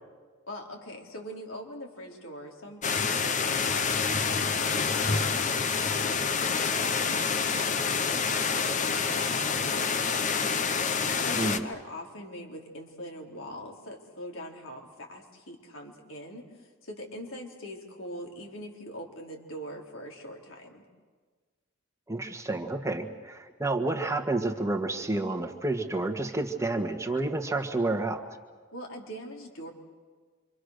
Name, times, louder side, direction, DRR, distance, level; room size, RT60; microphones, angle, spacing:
voice 1, 0.5-6.5 6.8-10.2 11.2-20.9 28.7-29.7, equal, 85° left, 0 dB, 3.9 m, -43 dB
sound 1, 2.8-11.6, left 5 dB, 40° left, 0.9 m, -27 dB
voice 2, 22.1-28.2, right 2 dB, 15° right, 5 dB, 1.6 m, -30 dB
27.0 x 25.5 x 6.6 m, 1.5 s
head